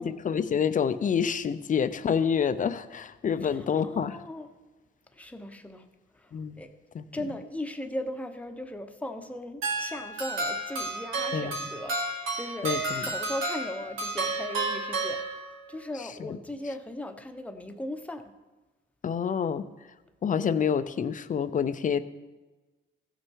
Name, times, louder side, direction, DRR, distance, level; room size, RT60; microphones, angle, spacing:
voice 1, 0.0-4.2 6.3-6.6 6.9-7.0 11.3-11.5 12.6-13.1 16.2-16.4 19.0-19.6 20.2-22.0, left 7 dB, 40° left, 12 dB, 0.6 m, -27 dB
voice 2, 3.4-4.5 5.1-5.9 6.1-6.3 6.6-6.7 7.1-15.4 15.7-18.2, left 1 dB, 5° left, 6 dB, 1.0 m, -38 dB
sound 1, 9.6-15.8, right 2 dB, 85° right, 2.0 m, -32 dB
15.0 x 6.4 x 4.6 m, 1.2 s
cardioid pair, 90°, 20 cm